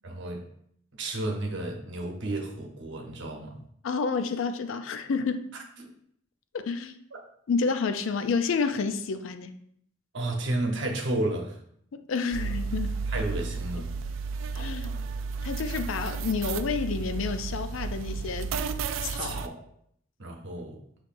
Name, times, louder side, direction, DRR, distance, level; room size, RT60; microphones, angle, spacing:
voice 1, 0.0-0.4 0.9-3.6 5.8-5.9 7.1-7.2 10.1-11.6 13.1-13.9 19.1-19.5 20.2-20.8, right 2 dB, 65° right, 0.9 m, -32 dB
voice 2, 3.8-5.5 6.5-7.0 7.5-9.5 12.1-13.0 14.5-14.9 15.4-18.5 19.0-19.4, left 4 dB, 80° left, 0.4 m, -29 dB
sound 1, 12.3-19.5, right 4 dB, 85° right, 0.3 m, -32 dB
6.4 x 3.1 x 2.5 m
head